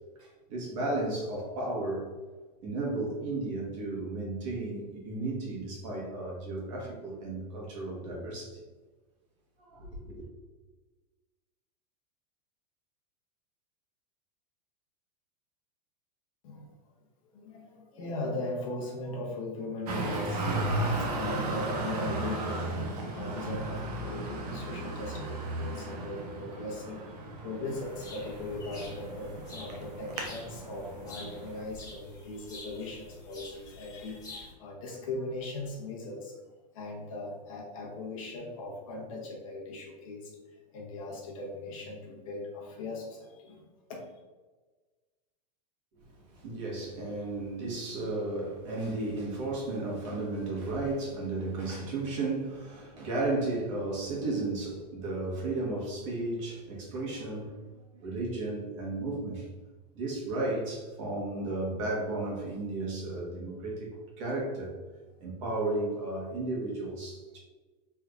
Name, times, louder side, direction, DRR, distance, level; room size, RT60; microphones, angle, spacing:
voice 1, 0.2-2.1 2.6-8.6 9.6-10.1 45.9-59.5 59.9-64.8 65.2-67.4, right 2 dB, 50° right, -4 dB, 1.2 m, -34 dB
voice 2, 17.2-44.1, left 2 dB, 50° left, -1 dB, 0.7 m, -39 dB
Traffic noise roadway noise, 19.9-31.6, right 2 dB, 65° right, 0.8 m, -35 dB
sound 1, 27.6-34.5, left 2 dB, 15° left, 1.0 m, -48 dB
3.3 x 3.1 x 2.4 m, 1.3 s
supercardioid pair, 170°, 21 cm